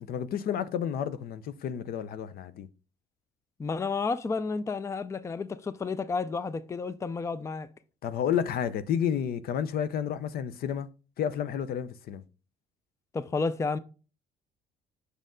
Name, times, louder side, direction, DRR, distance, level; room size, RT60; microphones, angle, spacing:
voice 1, 0.0-2.7 8.0-10.9 11.2-12.2, left 8 dB, 65° left, 0.6 m, -31 dB
voice 2, 3.6-7.7 13.1-13.8, left 4 dB, 15° left, 0.4 m, -31 dB
6.4 x 5.3 x 3.7 m
cardioid pair, 110°, 17 cm